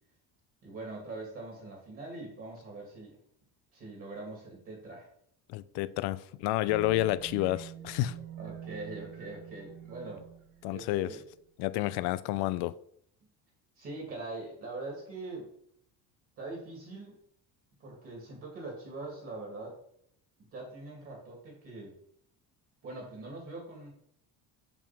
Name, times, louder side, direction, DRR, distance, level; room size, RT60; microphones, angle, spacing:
voice 1, 0.6-3.2 3.7-5.1 8.4-10.3 10.7-11.2 13.8-15.5 16.4-17.1 17.8-19.8 20.5-21.9 22.8-23.9, right 2 dB, 35° right, -1 dB, 2.4 m, -42 dB
voice 2, 5.5-8.2 10.6-11.2 11.6-12.7, left 16 dB, 75° left, 16 dB, 0.5 m, -30 dB
sound 1, 6.7-11.4, right 10 dB, 60° right, 1.6 m, -46 dB
7.1 x 3.7 x 5.9 m, 0.68 s
cardioid pair, 170°, 38 cm